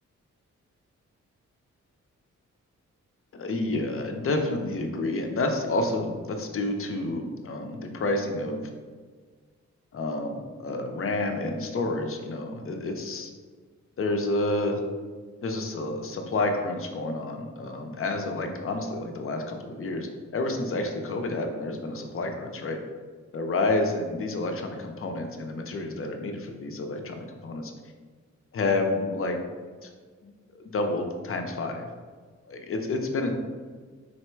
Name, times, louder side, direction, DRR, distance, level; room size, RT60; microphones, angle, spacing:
voice 1, 3.3-8.7 9.9-13.3 14.0-14.8 15.4-22.8 23.3-27.7 28.5-29.4 29.8-29.9 30.2-31.9 32.5-33.3, left 2 dB, 50° left, 4 dB, 0.6 m, -29 dB
4.1 x 2.1 x 4.4 m, 1.5 s
wide cardioid pair, 105°, 29 cm